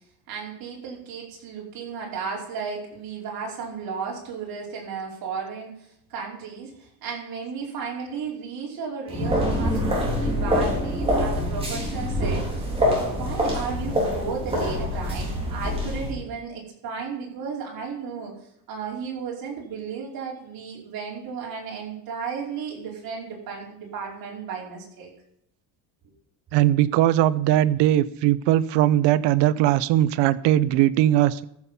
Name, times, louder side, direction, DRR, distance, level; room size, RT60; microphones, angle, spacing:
voice 1, 0.3-5.7 6.1-18.3 18.7-25.1, right 6 dB, 55° right, -3 dB, 5.0 m, -34 dB
sound 1, 9.1-16.1, equal, 15° right, 3.8 m, -25 dB
voice 2, 26.5-31.5, right 13 dB, 85° right, 18 dB, 0.8 m, -20 dB
14.0 x 7.2 x 5.7 m, 0.77 s
cardioid pair, 150°, 41 cm